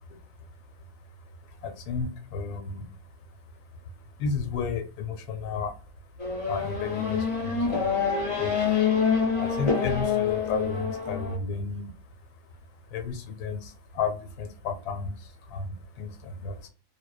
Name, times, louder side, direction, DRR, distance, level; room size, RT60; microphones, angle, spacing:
voice 1, 1.4-2.9 4.2-5.7 6.5-7.9 8.2-8.8 9.1-11.9 12.9-16.7, left 5 dB, 80° left, 6 dB, 1.1 m, -33 dB
Race car auto racing / Accelerating revving vroom, 6.2-11.4, left 6 dB, 35° left, 0.5 m, -26 dB
2.6 x 2.0 x 2.3 m, 0.35 s
omnidirectional pair, 1.6 m